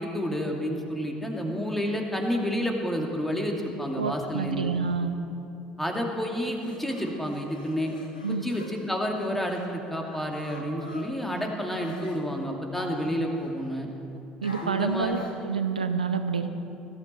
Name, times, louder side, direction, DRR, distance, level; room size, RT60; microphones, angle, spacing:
voice 1, 0.0-4.7 5.8-7.9 8.4-13.9 14.6-15.2, equal, 5° left, 1 dB, 2.5 m, -30 dB
voice 2, 4.0-5.1 8.2-8.4 14.4-15.2 15.4-16.6, right 5 dB, 80° right, 8 dB, 0.9 m, -28 dB
sound 1, 6.4-9.7 10.0-12.2 12.7-13.8 14.4-15.4, left 2 dB, 80° left, 1.6 m, -46 dB
20.0 x 13.0 x 4.5 m, 2.8 s
figure-of-eight pair, 60°, 4 cm